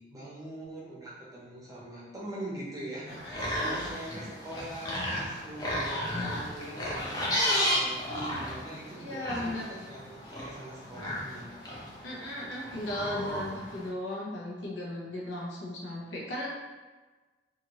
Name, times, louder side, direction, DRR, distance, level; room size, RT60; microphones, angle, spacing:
voice 1, 0.0-11.5, right 1 dB, 20° right, -7 dB, 0.7 m, -43 dB
sound 1, 3.1-13.9, equal, 20° left, 0.5 m, -33 dB
voice 2, 3.2-3.7 9.0-9.7 12.0-16.5, left 1 dB, 90° left, -4 dB, 0.7 m, -36 dB
2.8 x 2.5 x 2.9 m, 1.3 s
head